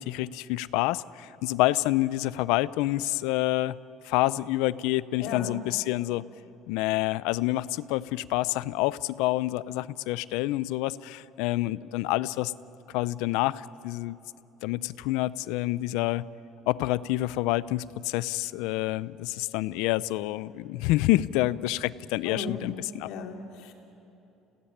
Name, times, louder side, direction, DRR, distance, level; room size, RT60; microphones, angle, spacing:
voice 1, 0.0-3.8 4.0-6.2 6.7-12.5 12.9-14.2 14.6-16.2 16.7-23.1, left 17 dB, 85° left, 17 dB, 0.5 m, -28 dB
voice 2, 5.2-5.5 22.2-22.6 23.0-23.7, left 5 dB, 65° left, 3 dB, 2.7 m, -36 dB
29.0 x 16.5 x 10.0 m, 3.0 s
cardioid pair, 180°, 0 cm